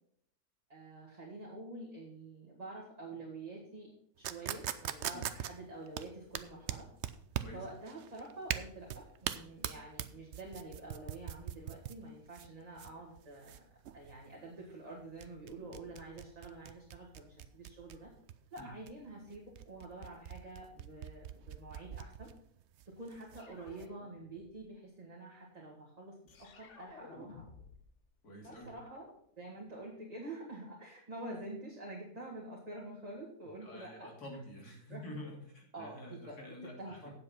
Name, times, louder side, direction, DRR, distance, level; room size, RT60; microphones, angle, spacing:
voice 1, 0.7-3.9 4.2-6.9 7.5-13.7 13.9-18.1 18.5-19.4 19.6-22.3 22.9-27.5 28.4-29.1 29.4-34.1 34.9-35.0 35.7-36.0 36.3-36.4 36.8-37.1, right 2 dB, 25° right, -3 dB, 2.0 m, -47 dB
sound 1, 4.2-23.9, right 10 dB, 60° right, 0.8 m, -42 dB
sound 2, 23.4-24.7 26.3-27.9 28.2-29.8, left 5 dB, 55° left, 1.2 m, -56 dB
voice 2, 28.2-28.7 33.6-37.0, left 1 dB, 85° left, -1 dB, 3.3 m, -48 dB
8.8 x 7.6 x 5.6 m, 0.68 s
omnidirectional pair, 1.6 m